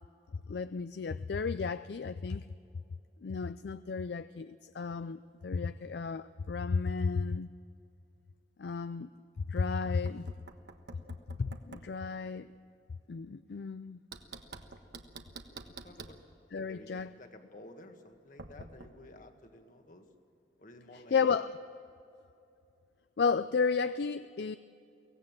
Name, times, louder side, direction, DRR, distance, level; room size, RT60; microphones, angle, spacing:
voice 1, 0.5-2.5 3.2-7.5 8.6-9.1 9.4-10.3 11.4-12.5 13.1-14.0 16.5-17.1 21.1-21.5 23.2-24.6, left 5 dB, 65° left, 13 dB, 0.4 m, -33 dB
Knock, 9.8-12.0 14.1-16.2 18.4-18.9, right 3 dB, 65° right, 1.3 m, -48 dB
voice 2, 15.5-16.2 16.7-20.1 20.6-21.5, left 1 dB, 45° left, 5 dB, 1.8 m, -53 dB
24.0 x 17.5 x 7.4 m, 2.6 s
head